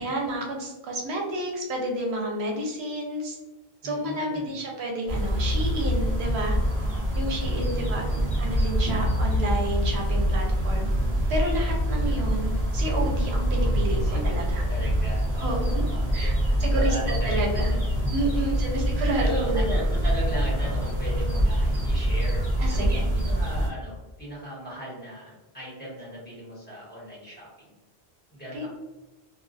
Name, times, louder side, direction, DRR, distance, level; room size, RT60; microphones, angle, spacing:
voice 1, 0.0-3.4 3.8-6.6 7.2-10.9 11.3-14.6 15.4-15.8 16.1-16.3 16.6-17.0 17.2-17.7 18.1-19.7 22.6-23.0 28.5-28.7, right 1 dB, 80° right, 0 dB, 0.9 m, -30 dB
voice 2, 3.8-4.5 7.4-8.4 12.0-12.3 14.0-14.2 14.6-16.3 16.7-17.8 18.3-18.8 19.2-22.4 22.7-27.5 28.3-28.7, equal, 10° left, -9 dB, 1.1 m, -37 dB
sound 1, 5.1-23.7, equal, 40° right, 0.8 m, -25 dB
2.3 x 2.2 x 2.4 m, 1.1 s
omnidirectional pair, 1.1 m